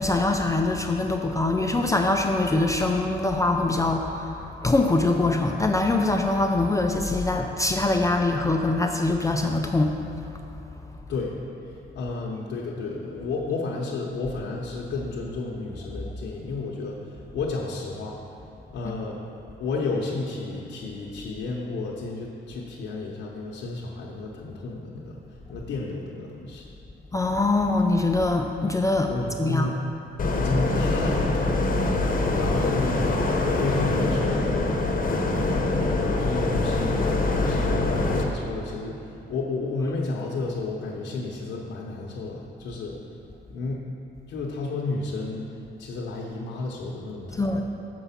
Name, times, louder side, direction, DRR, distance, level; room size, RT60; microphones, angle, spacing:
voice 1, 0.0-9.9 27.1-29.1 29.4-29.7 47.4-47.6, left 2 dB, 15° left, 3 dB, 0.4 m, -23 dB
voice 2, 11.9-18.2 18.7-19.2 19.6-25.2 25.5-26.6 29.1-29.8 30.4-31.7 32.4-33.0 33.4-34.6 35.8-37.0 37.3-43.0 43.5-43.8 44.3-45.5 45.8-47.6, left 3 dB, 75° left, -4 dB, 0.9 m, -31 dB
sound 1, 30.2-38.2, left 2 dB, 45° left, 0.9 m, -24 dB
6.9 x 4.7 x 5.7 m, 2.8 s
cardioid pair, 90°, 20 cm